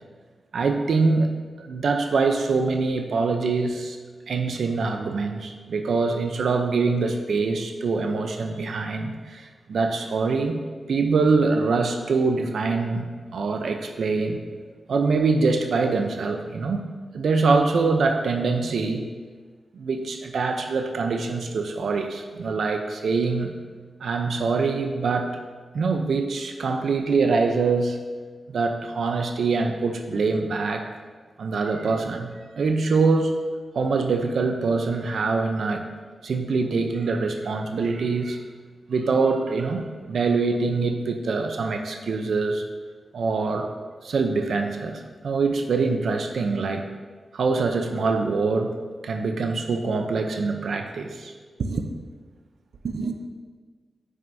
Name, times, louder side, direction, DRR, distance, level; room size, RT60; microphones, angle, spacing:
voice 1, 0.5-1.3 1.6-4.0 4.3-10.6 10.9-14.4 14.9-16.8 17.1-19.1 19.7-23.5 24.0-25.3 25.7-28.0 28.5-30.9 31.4-32.3 32.6-33.3 33.7-35.8 36.2-38.4 38.9-42.6 43.1-43.7 44.0-46.9 47.3-48.7 49.0-51.3 51.6-51.8 52.8-53.2, right 4 dB, 75° right, 5 dB, 0.6 m, -24 dB
9.1 x 6.2 x 2.7 m, 1.5 s
wide cardioid pair, 125°, 0 cm